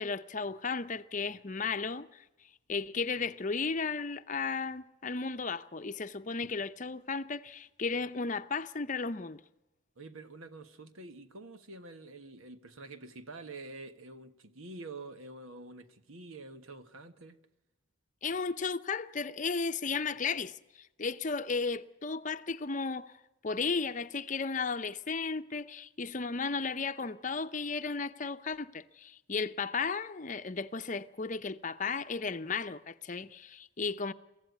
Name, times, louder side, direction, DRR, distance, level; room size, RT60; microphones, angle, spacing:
voice 1, 0.0-2.2 2.7-9.4 18.2-23.1 23.4-34.1, left 4 dB, 35° left, 0.7 m, -34 dB
voice 2, 10.0-17.4, right 2 dB, 85° right, 1.5 m, -47 dB
23.5 x 15.5 x 9.5 m
head